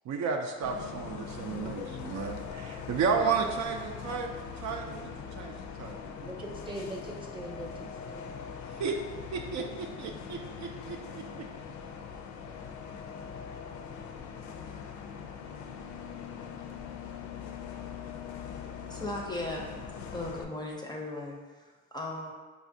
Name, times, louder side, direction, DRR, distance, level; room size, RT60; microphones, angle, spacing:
voice 1, 0.0-6.3 8.7-9.0 9.3-11.5, right 5 dB, 65° right, 3 dB, 0.5 m, -33 dB
Bus, 0.6-20.4, left 6 dB, 70° left, 0.4 m, -42 dB
voice 2, 6.2-8.3, right 1 dB, 15° right, -1 dB, 0.7 m, -41 dB
voice 3, 18.9-19.8 20.1-22.3, left 2 dB, 15° left, -1 dB, 0.5 m, -37 dB
4.9 x 2.4 x 2.6 m, 1.4 s
cardioid pair, 90°, 30 cm